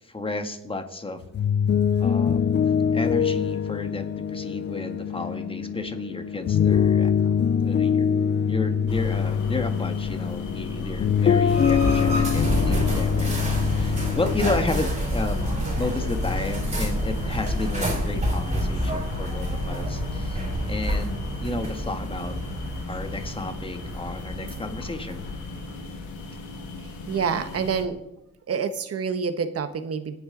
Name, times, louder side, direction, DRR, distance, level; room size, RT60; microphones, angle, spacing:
voice 1, 0.0-1.2 2.0-2.6 2.9-7.4 7.6-8.1 8.5-22.4 22.9-25.3, left 2 dB, 20° left, 6 dB, 1.8 m, -32 dB
sound 1, 1.2-14.6, left 7 dB, 35° left, 0.5 m, -23 dB
sound 2, 8.9-27.8, left 2 dB, 85° left, 2.4 m, -37 dB
sound 3, 11.5-26.0, equal, 20° right, 4.4 m, -28 dB
voice 2, 15.6-16.0 27.1-28.0 28.5-30.2, right 6 dB, 50° right, 9 dB, 1.4 m, -28 dB
26.5 x 9.2 x 4.0 m, 0.89 s
cardioid pair, 90°, 30 cm